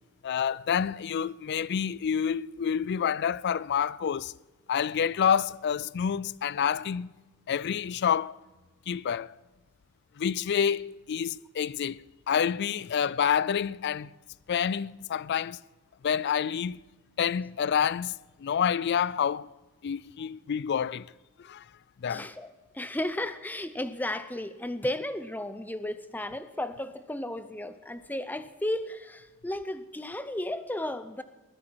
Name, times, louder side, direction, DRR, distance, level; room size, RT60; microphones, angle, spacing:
voice 1, 0.2-4.3 4.7-7.2 7.5-8.3 8.9-9.3 10.2-14.1 14.5-15.6 16.0-16.8 17.2-19.5 19.8-21.1 21.4-21.6 22.0-22.3, left 8 dB, 50° left, 0.3 m, -28 dB
voice 2, 22.1-31.2, left 1 dB, 10° left, 0.7 m, -34 dB
20.0 x 9.9 x 4.7 m
head